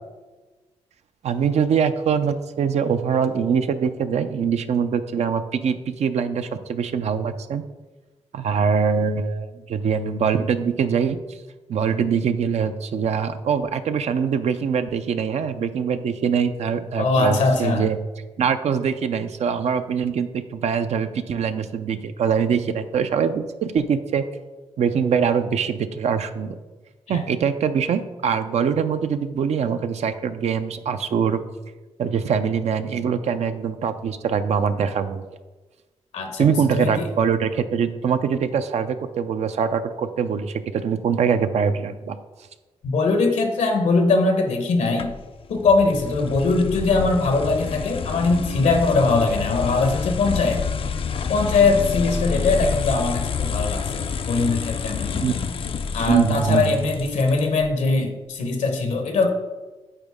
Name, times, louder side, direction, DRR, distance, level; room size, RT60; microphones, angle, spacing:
voice 1, 1.2-7.6 8.3-11.4 11.7-18.0 18.4-24.2 24.8-26.6 27.1-31.4 32.0-35.2 36.4-42.2 55.2-55.3 56.1-56.9, right 6 dB, 70° right, 9 dB, 0.5 m, -23 dB
voice 2, 17.0-17.8 27.1-27.2 36.1-37.1 42.8-45.1 45.5-50.6 51.3-55.4 55.9-59.3, left 3 dB, 80° left, 5 dB, 1.1 m, -21 dB
sound 1, 45.0-57.7, left 6 dB, 50° left, 0.4 m, -28 dB
9.1 x 4.0 x 3.6 m, 1.2 s
cardioid pair, 60°, 12 cm